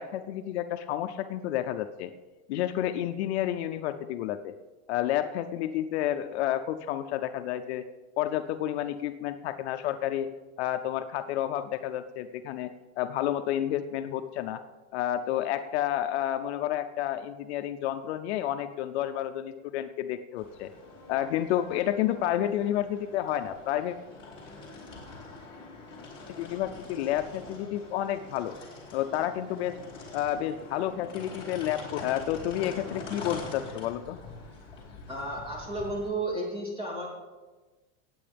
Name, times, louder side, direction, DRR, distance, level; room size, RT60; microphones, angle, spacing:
voice 1, 0.0-2.1 2.5-4.5 4.9-7.9 8.2-10.3 10.6-14.6 14.9-20.7 21.1-24.0 26.4-28.5 28.9-29.8 30.1-34.2, left 12 dB, 60° left, 9 dB, 0.6 m, -30 dB
sound 1, 20.4-36.1, left 3 dB, 15° left, 2.5 m, -44 dB
voice 2, 35.1-37.1, right 1 dB, 15° right, -3 dB, 2.8 m, -33 dB
17.5 x 8.6 x 3.4 m, 1.2 s
supercardioid pair, 165°, 37 cm